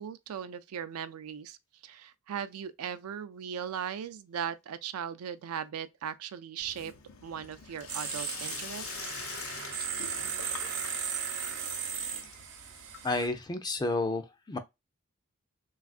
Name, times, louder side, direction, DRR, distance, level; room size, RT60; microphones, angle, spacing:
voice 1, 0.0-1.6 1.8-6.9 7.2-9.1, right 8 dB, 85° right, 0.4 m, -38 dB
Sink (filling or washing), 6.6-13.4, left 6 dB, 70° left, 0.6 m, -45 dB
sound 1, 7.9-13.3, right 7 dB, 60° right, 0.7 m, -36 dB
voice 2, 13.0-14.6, left 2 dB, 20° left, 0.4 m, -31 dB
3.3 x 2.4 x 2.3 m
head